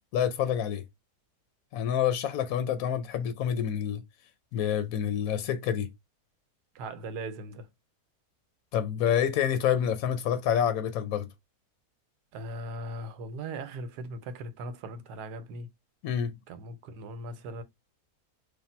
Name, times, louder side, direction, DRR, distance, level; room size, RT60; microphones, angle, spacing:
voice 1, 0.1-0.8 1.7-4.0 4.5-5.9 8.7-11.3 16.0-16.3, left 9 dB, 70° left, 1.0 m, -27 dB
voice 2, 6.7-7.7 12.3-15.7 16.5-17.6, right 1 dB, 85° right, 1.2 m, -39 dB
3.5 x 2.4 x 4.2 m
omnidirectional pair, 1.7 m